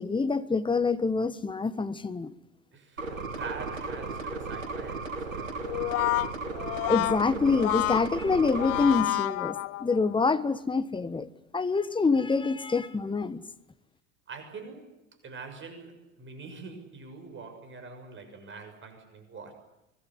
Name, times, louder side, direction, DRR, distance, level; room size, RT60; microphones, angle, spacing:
voice 1, 0.0-2.3 6.9-13.4, left 4 dB, 10° left, 1.3 m, -26 dB
voice 2, 2.7-5.7 14.3-14.9 15.2-19.5, right 4 dB, 30° right, 6.7 m, -44 dB
sound 1, 3.0-9.0, right 3 dB, 80° right, 3.3 m, -35 dB
Brass instrument, 5.6-10.1, left 17 dB, 35° left, 0.8 m, -30 dB
25.0 x 21.0 x 9.4 m
figure-of-eight pair, 80°, 39 cm